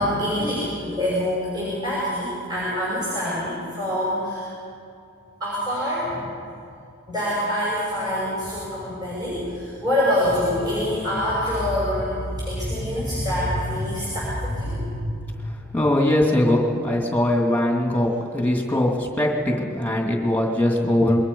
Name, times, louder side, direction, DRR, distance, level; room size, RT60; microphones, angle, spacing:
voice 1, 0.0-4.5 5.4-6.3 7.1-15.3, left 1 dB, 20° right, -8 dB, 5.7 m, -25 dB
voice 2, 15.7-21.2, left 1 dB, 10° left, 0 dB, 2.5 m, -21 dB
26.5 x 22.5 x 5.4 m, 2.5 s
head